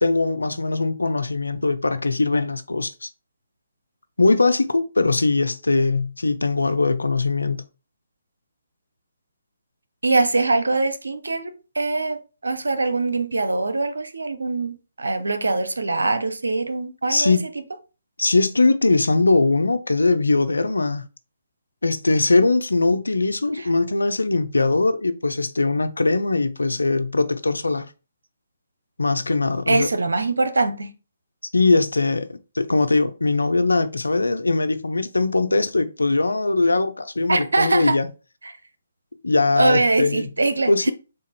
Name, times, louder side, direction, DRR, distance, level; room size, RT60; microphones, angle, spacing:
voice 1, 0.0-3.1 4.2-7.6 17.1-17.4 18.2-21.1 21.8-27.9 29.0-29.9 31.5-38.1 39.2-40.3 40.7-40.9, left 3 dB, 85° left, 0.5 m, -21 dB
voice 2, 10.0-17.3 23.6-23.7 29.7-30.9 37.3-38.0 38.4-38.5 39.6-40.9, right 3 dB, 80° right, 0.6 m, -23 dB
3.7 x 2.5 x 4.1 m
figure-of-eight pair, 140°, 0 cm